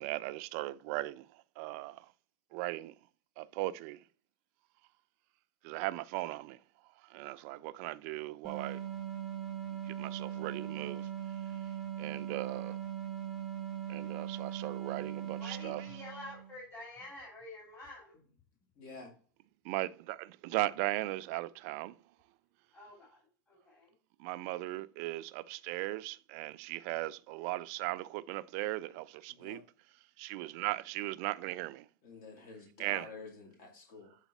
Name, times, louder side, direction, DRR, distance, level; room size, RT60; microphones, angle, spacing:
voice 1, 0.0-2.1 2.5-2.9 3.4-4.0 5.6-6.6 7.0-8.8 9.9-11.1 12.0-12.8 13.9-16.3 19.6-22.0 24.2-29.6 30.2-31.9 32.8-33.1, right 18 dB, 50° right, 0.4 m, -38 dB
sound 1, 8.4-16.6, right 10 dB, 5° left, 1.6 m, -40 dB
voice 2, 15.4-18.2 22.7-23.9 30.5-30.7, left 2 dB, 20° left, 3.0 m, -49 dB
voice 3, 18.8-19.1 29.3-29.6 32.0-34.2, left 4 dB, 50° left, 2.3 m, -49 dB
8.1 x 4.0 x 4.1 m
hypercardioid pair, 120°, 11 cm